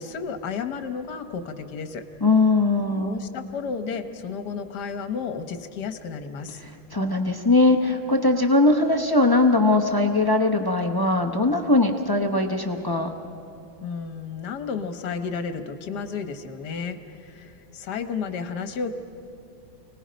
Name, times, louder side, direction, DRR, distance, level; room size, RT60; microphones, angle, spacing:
voice 1, 0.0-2.0 3.0-6.6 13.8-18.9, left 5 dB, 60° left, 8 dB, 1.6 m, -32 dB
voice 2, 2.2-3.2 6.6-13.1, left 2 dB, 25° left, 4 dB, 0.4 m, -20 dB
29.5 x 19.5 x 5.2 m, 2.9 s
omnidirectional pair, 2.2 m